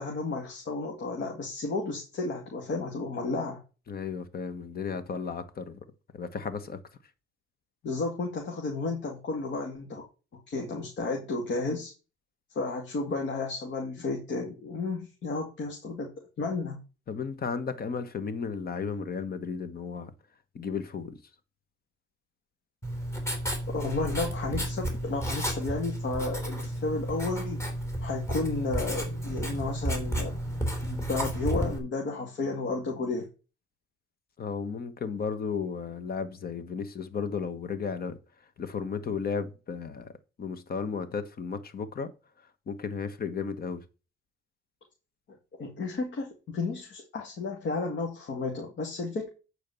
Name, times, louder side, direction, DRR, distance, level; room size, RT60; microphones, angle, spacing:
voice 1, 0.0-3.6 7.8-10.0 10.5-11.9 12.5-16.1 16.4-16.8 23.7-27.6 28.0-30.3 30.8-33.3 45.6-49.3, left 3 dB, 65° left, 2.3 m, -32 dB
voice 2, 3.9-5.8 6.1-6.8 17.1-20.1 20.5-21.2 34.4-38.2 38.6-40.1 40.4-42.1 42.7-43.8, left 5 dB, 50° left, 1.4 m, -34 dB
Writing, 22.8-31.8, right 1 dB, 15° left, 3.3 m, -32 dB
8.8 x 4.7 x 6.9 m
cardioid pair, 90°, 20 cm